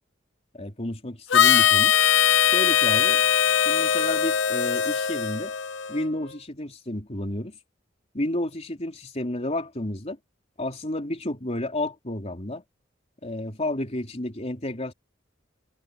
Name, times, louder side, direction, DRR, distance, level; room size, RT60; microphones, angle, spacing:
voice 1, 0.5-1.9 2.5-3.2 3.6-5.5 5.9-7.6 8.1-10.2 10.6-12.6 13.2-14.9, left 1 dB, 35° left, 3.8 m, -31 dB
Harmonica, 1.3-6.1, left 9 dB, 80° left, 1.0 m, -21 dB
head